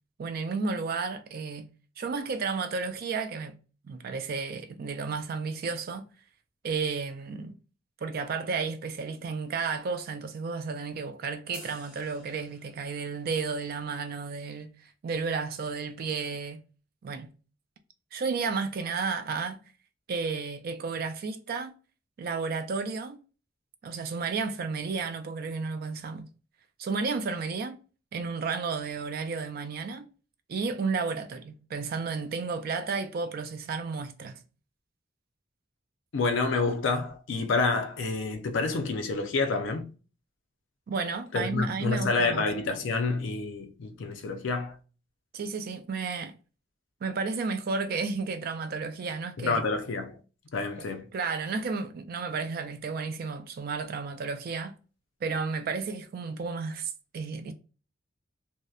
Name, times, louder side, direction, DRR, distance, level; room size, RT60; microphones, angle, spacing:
voice 1, 0.2-1.7 2.0-3.6 3.8-6.1 6.6-7.5 8.0-14.7 15.0-16.6 17.0-17.3 18.1-19.6 20.1-21.7 22.2-23.2 23.8-26.3 26.8-27.8 28.1-30.0 30.5-34.4 40.9-42.4 45.3-46.3 47.0-49.6 51.1-54.7 55.2-57.5, right 4 dB, 50° right, 0.3 m, -32 dB
sound 1, 11.5-13.1, equal, 5° right, 0.7 m, -50 dB
voice 2, 36.1-39.9 41.3-44.8 49.4-50.2 50.5-51.1, left 3 dB, 75° left, 0.5 m, -28 dB
2.6 x 2.1 x 2.3 m
head